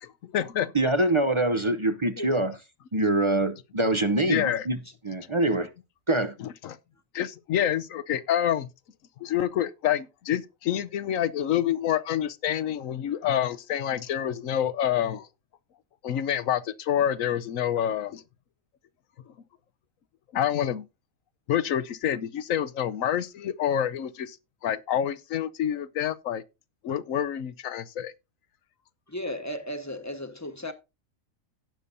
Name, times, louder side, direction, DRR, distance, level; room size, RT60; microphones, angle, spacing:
voice 1, 0.0-0.7 4.2-4.7 6.4-6.8 7.1-8.7 9.2-15.3 16.0-18.2 20.3-20.8 21.5-24.4 24.6-26.4 26.8-28.1, left 10 dB, 80° left, 1.1 m, -27 dB
voice 2, 0.7-2.5 2.9-4.8 5.0-5.7 6.1-6.3, right 2 dB, 30° right, 0.6 m, -24 dB
voice 3, 29.1-30.7, left 1 dB, 15° left, 1.1 m, -35 dB
17.0 x 6.8 x 2.6 m
omnidirectional pair, 1.4 m